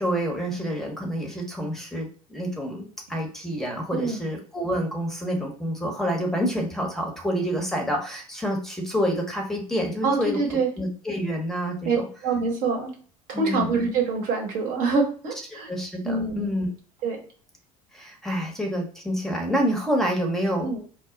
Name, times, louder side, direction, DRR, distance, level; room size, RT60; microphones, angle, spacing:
voice 1, 0.0-10.4 10.8-12.1 13.3-13.8 15.6-16.7 17.9-20.7, equal, ahead, 2 dB, 0.8 m, -28 dB
voice 2, 10.0-10.7 11.9-12.9 13.3-15.7 16.0-16.5 17.0-17.2 20.6-20.8, right 4 dB, 50° right, 1 dB, 0.9 m, -25 dB
2.1 x 2.0 x 3.7 m, 0.42 s
figure-of-eight pair, 65°, 18 cm